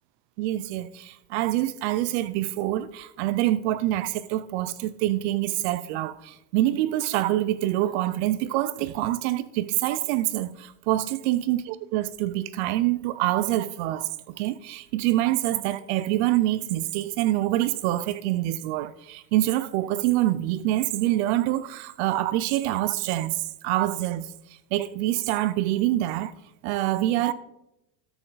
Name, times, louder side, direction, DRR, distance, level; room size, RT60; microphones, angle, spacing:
voice 1, 0.4-24.3 24.7-26.3 26.6-27.3, right 15 dB, 50° right, 0.4 m, -26 dB
10.0 x 7.8 x 4.0 m
supercardioid pair, 155°, 44 cm